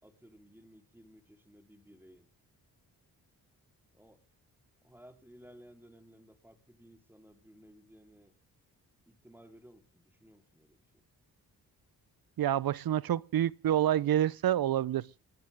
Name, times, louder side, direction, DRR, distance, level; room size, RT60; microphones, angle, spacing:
voice 1, 0.0-2.3 3.9-4.2 4.8-8.3 9.1-11.1, equal, 5° right, 4.0 m, -57 dB
voice 2, 12.4-15.2, right 11 dB, 70° right, 0.8 m, -28 dB
28.0 x 10.5 x 3.7 m
cardioid pair, 60°, 37 cm